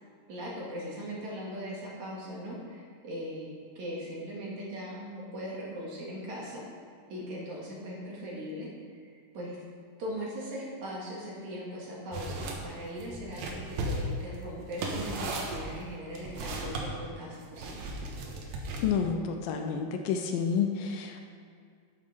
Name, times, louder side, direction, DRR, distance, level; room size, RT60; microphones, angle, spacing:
voice 1, 0.3-6.6 7.1-8.7 9.3-9.6 10.0-17.8, equal, 55° right, -5 dB, 3.2 m, -39 dB
sound 1, 12.1-12.6 13.0-16.9 17.6-19.1, right 2 dB, 85° right, 3.1 m, -36 dB
voice 2, 18.8-21.3, left 6 dB, 75° left, 4 dB, 2.4 m, -29 dB
8.8 x 7.8 x 6.4 m, 2.2 s
omnidirectional pair, 4.2 m